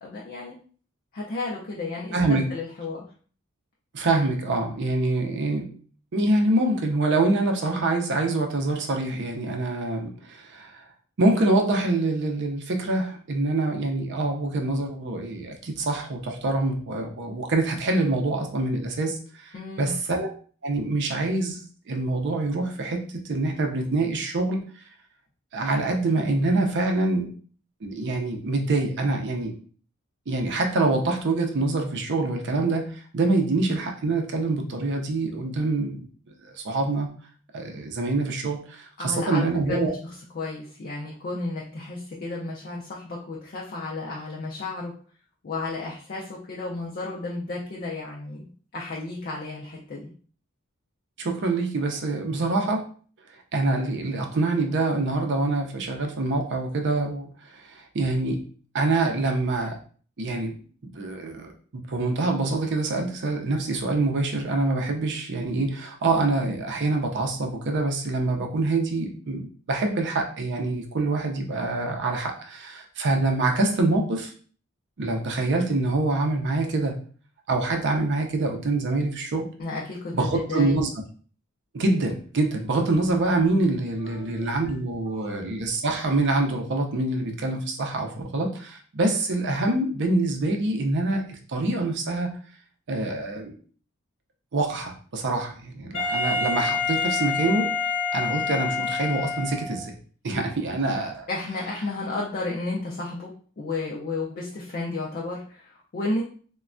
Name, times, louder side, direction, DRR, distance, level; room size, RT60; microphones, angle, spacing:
voice 1, 0.0-0.6 1.1-3.1 19.5-19.9 39.0-44.9 45.4-50.1 79.6-80.8 84.0-84.7 85.1-85.3 101.3-106.2, left 2 dB, 40° left, -3 dB, 0.5 m, -33 dB
voice 2, 2.1-2.4 3.9-5.7 6.1-10.8 11.2-20.3 20.6-24.6 25.5-27.3 27.8-29.5 30.3-37.1 37.5-39.9 51.2-52.9 53.5-58.4 58.7-59.8 60.2-60.6 60.9-74.3 75.0-77.0 77.5-79.5 80.1-80.9 81.7-92.4 92.9-93.6 94.5-97.7 98.1-100.0 100.2-101.3, right 2 dB, 55° right, 3 dB, 0.5 m, -25 dB
Wind instrument woodwind instrument, 95.9-99.9, left 4 dB, 60° left, 1.0 m, -27 dB
3.2 x 2.2 x 2.5 m, 0.43 s
head